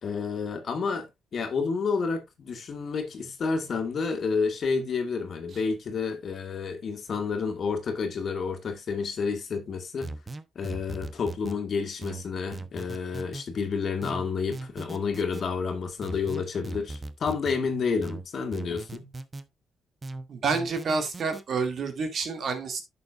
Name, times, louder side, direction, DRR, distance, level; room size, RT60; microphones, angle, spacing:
voice 1, 0.0-10.1 10.6-19.1, left 5 dB, 50° left, 2.2 m, -30 dB
sound 1, 10.0-11.6 12.0-13.5 14.0-15.4 16.0-17.6 18.0-19.5 20.0-21.4, right 3 dB, 25° right, 1.0 m, -39 dB
voice 2, 20.3-22.8, right 4 dB, 55° right, 2.5 m, -28 dB
11.0 x 6.9 x 2.5 m
cardioid pair, 90°, 0 cm